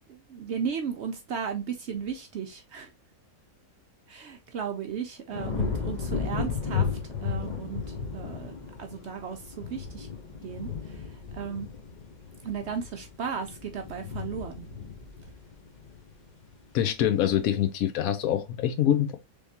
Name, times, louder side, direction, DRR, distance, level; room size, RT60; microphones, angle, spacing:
voice 1, 0.1-2.9 4.1-10.1 10.4-11.1 11.3-11.7 12.4-14.7, right 7 dB, 65° right, 0.7 m, -35 dB
sound 1, 5.3-16.6 17.0-17.5, left 6 dB, 40° left, 0.7 m, -34 dB
voice 2, 16.7-19.2, left 10 dB, 80° left, 1.0 m, -25 dB
3.5 x 3.1 x 2.7 m
omnidirectional pair, 1.5 m